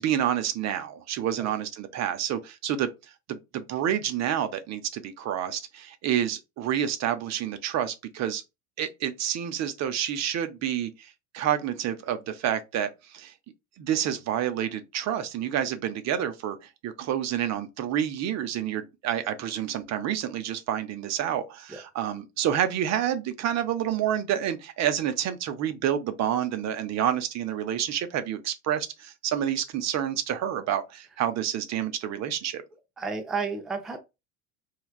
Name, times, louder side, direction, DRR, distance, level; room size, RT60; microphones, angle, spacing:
voice 1, 0.0-2.9 3.3-8.4 8.8-13.3 13.8-32.6, right 10 dB, 40° right, 0.6 m, -29 dB
voice 2, 33.0-34.0, right 4 dB, ahead, 0.3 m, -31 dB
3.2 x 2.3 x 2.3 m
hypercardioid pair, 80°, 41 cm